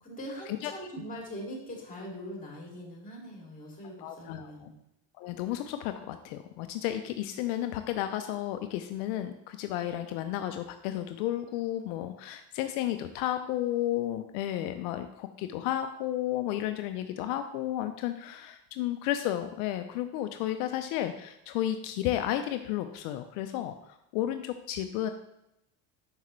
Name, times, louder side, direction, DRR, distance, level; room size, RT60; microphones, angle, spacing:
voice 1, 0.0-4.7, equal, 20° left, -2 dB, 2.4 m, -42 dB
voice 2, 4.0-4.7 5.2-23.7 24.1-25.1, left 12 dB, 75° left, 8 dB, 0.6 m, -32 dB
5.7 x 5.6 x 3.1 m, 0.85 s
supercardioid pair, 90°, 43 cm